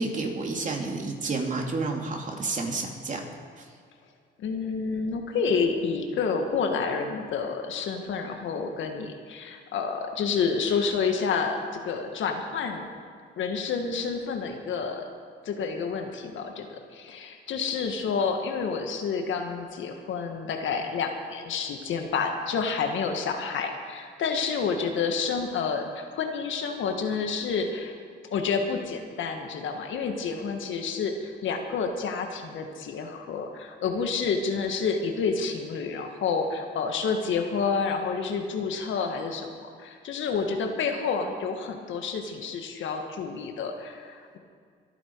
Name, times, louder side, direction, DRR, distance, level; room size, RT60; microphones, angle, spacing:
voice 1, 0.0-3.2 3.6-3.7, right 3 dB, 40° right, 1 dB, 2.8 m, -30 dB
voice 2, 4.4-12.9 13.4-15.1 15.5-27.9 28.3-44.4, left 5 dB, 75° left, 4 dB, 1.7 m, -29 dB
25.0 x 9.0 x 4.7 m, 2.2 s
cardioid pair, 90°, 20 cm